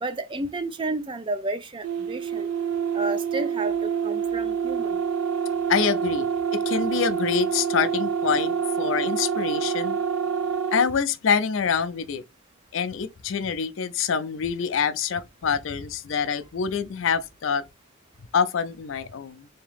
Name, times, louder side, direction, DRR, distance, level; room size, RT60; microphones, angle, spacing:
voice 1, 0.0-2.5 2.9-5.0, right 2 dB, 25° right, 0.3 m, -31 dB
sound 1, 1.8-10.9, right 7 dB, 90° right, 0.4 m, -26 dB
voice 2, 5.7-10.0 10.7-12.2 12.7-17.6 18.3-19.5, left 6 dB, 60° left, 0.4 m, -26 dB
3.5 x 2.8 x 3.4 m
head